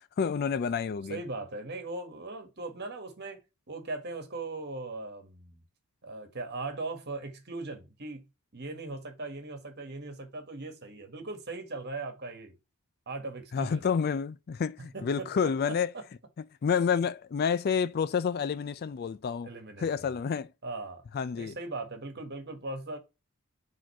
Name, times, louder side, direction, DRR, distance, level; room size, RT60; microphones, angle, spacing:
voice 1, 0.2-1.2 13.5-15.9 16.6-19.5 19.8-20.5 21.1-21.6, left 6 dB, 45° left, 0.3 m, -29 dB
voice 2, 1.1-3.4 3.7-5.6 6.0-8.2 8.5-12.6 13.1-13.8 14.9-15.3 15.7-15.8 19.4-20.1 20.6-21.0 21.4-23.0, right 2 dB, 50° right, 1.6 m, -39 dB
5.1 x 3.7 x 5.7 m
head